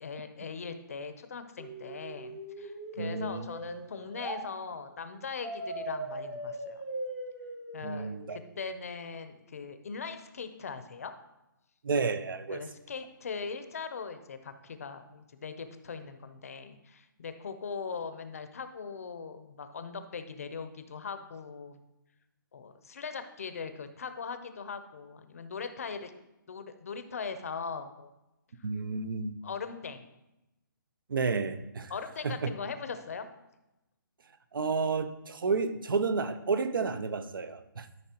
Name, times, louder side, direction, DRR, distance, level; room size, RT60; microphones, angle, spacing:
voice 1, 0.0-6.8 7.7-11.1 12.5-21.8 22.5-26.1 26.5-28.1 29.4-30.0 31.9-33.3, left 5 dB, 45° left, 9 dB, 0.6 m, -40 dB
sound 1, 1.6-4.4 5.4-8.4, right 1 dB, 10° right, 0.6 m, -40 dB
voice 2, 3.0-3.5 7.8-8.4 11.8-12.6 28.6-29.3 31.1-31.9 32.2-32.5 34.5-37.9, right 4 dB, 80° right, 12 dB, 0.7 m, -31 dB
12.5 x 5.4 x 2.9 m, 0.95 s
hypercardioid pair, 180°, 11 cm